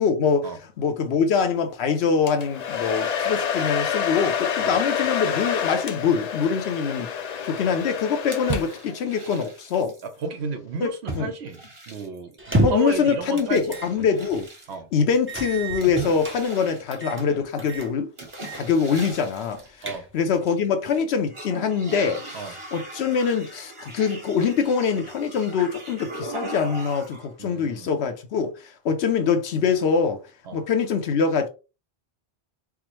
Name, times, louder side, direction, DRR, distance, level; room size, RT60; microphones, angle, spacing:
voice 1, 0.0-0.5 0.8-7.1 7.4-9.9 10.8-11.3 12.6-14.5 14.9-18.1 18.5-19.6 20.1-22.4 22.7-30.2 30.5-31.5, left 6 dB, 80° left, 0.9 m, -24 dB
Domestic sounds home sounds, 2.3-9.0, left 7 dB, 55° left, 0.5 m, -28 dB
sound 1, 8.3-10.1 11.1-12.4 13.4-14.7 15.8-17.5 18.2-19.7 20.3-21.0 21.3-27.3, right 2 dB, 30° right, 0.9 m, -38 dB
voice 2, 10.0-13.7 14.0-14.1 14.7-14.9 19.8-20.1 22.3-22.5 27.4-27.9 30.5-30.6, right 4 dB, 85° right, 1.0 m, -33 dB
sound 2, 12.4-13.0 13.7-13.9 14.3-14.4 15.3-16.4 16.9-17.3 17.6-17.9 18.3-18.7 19.0-19.1 19.6-20.3, right 1 dB, 15° right, 0.5 m, -28 dB
4.7 x 2.1 x 3.0 m
omnidirectional pair, 1.1 m